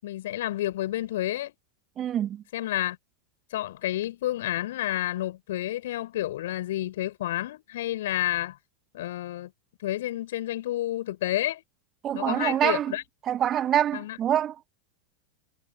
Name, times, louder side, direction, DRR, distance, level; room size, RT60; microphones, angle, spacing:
voice 1, 0.0-1.5 2.5-3.0 3.5-8.6 8.9-9.5 9.8-11.6 12.1-13.0 13.9-14.2, left 14 dB, 55° left, 7.8 m, -30 dB
voice 2, 2.0-2.4 12.0-12.9 13.3-14.5, right 10 dB, 30° right, 1.9 m, -25 dB
figure-of-eight pair, 90°, 0 cm